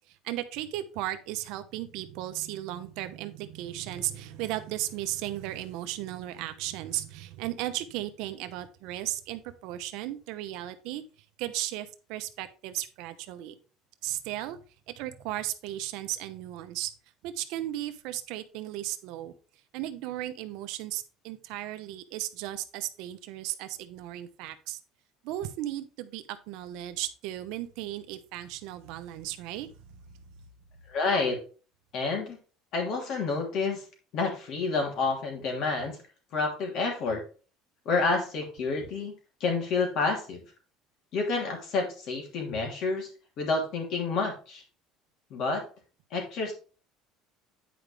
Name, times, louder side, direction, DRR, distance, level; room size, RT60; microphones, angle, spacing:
voice 1, 0.1-11.0 11.4-13.6 14.0-14.6 14.9-16.9 17.2-19.3 19.7-24.8 25.2-29.7, right 14 dB, 75° right, 10 dB, 0.8 m, -35 dB
voice 2, 30.9-31.4 31.9-32.4 32.7-33.8 34.1-36.0 36.3-37.2 37.8-39.1 39.4-40.4 41.1-43.1 43.4-44.6 45.3-45.6 46.1-46.5, left 4 dB, 55° left, 1 dB, 3.0 m, -29 dB
9.4 x 5.1 x 3.4 m, 0.36 s
cardioid pair, 140°, 0 cm